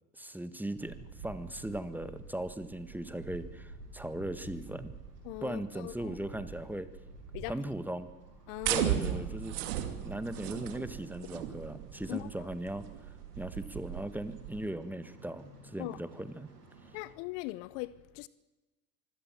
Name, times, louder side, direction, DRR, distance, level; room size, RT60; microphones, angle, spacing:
voice 1, 0.1-5.0 5.4-6.9 7.5-8.1 8.7-12.9 13.3-16.5, right 1 dB, 5° right, 1.6 m, -38 dB
sound 1, 0.8-17.2, right 4 dB, 85° right, 7.3 m, -51 dB
voice 2, 5.3-6.1 7.3-7.5 8.5-8.9 12.1-12.3 15.8-16.0 16.9-18.3, left 21 dB, 55° left, 0.9 m, -40 dB
sound 2, 8.6-14.7, right 11 dB, 65° right, 2.7 m, -36 dB
24.5 x 16.5 x 7.6 m
hypercardioid pair, 80°, 47 cm